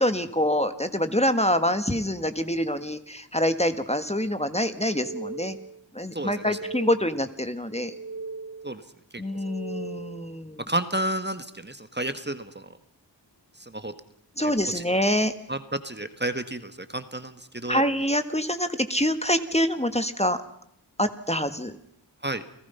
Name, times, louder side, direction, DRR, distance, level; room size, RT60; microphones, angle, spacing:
voice 1, 0.0-5.6 5.9-7.9 9.2-10.6 14.4-15.3 17.7-20.4 21.0-21.7, equal, 15° left, 9 dB, 1.6 m, -25 dB
sound 1, 4.7-5.8 6.2-7.3 7.7-8.8 9.2-10.4, right 3 dB, 50° right, 2.7 m, -39 dB
voice 2, 6.1-6.6 8.6-8.8 9.1-9.2 10.7-12.7 13.6-13.9 14.4-14.8 15.5-17.8 22.2-22.4, right 1 dB, 25° right, 10 dB, 1.7 m, -31 dB
30.0 x 17.0 x 5.7 m, 0.75 s
wide cardioid pair, 50°, 44 cm